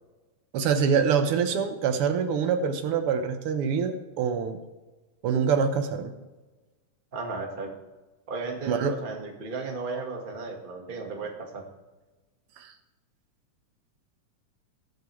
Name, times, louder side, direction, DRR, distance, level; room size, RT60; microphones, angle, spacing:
voice 1, 0.5-4.6 5.2-6.1 8.6-8.9 12.6-12.7, right 6 dB, 65° right, 7 dB, 1.5 m, -25 dB
voice 2, 7.1-7.7 8.3-11.6, right 4 dB, 30° right, 2 dB, 0.9 m, -35 dB
21.0 x 7.3 x 3.2 m, 1.2 s
omnidirectional pair, 3.5 m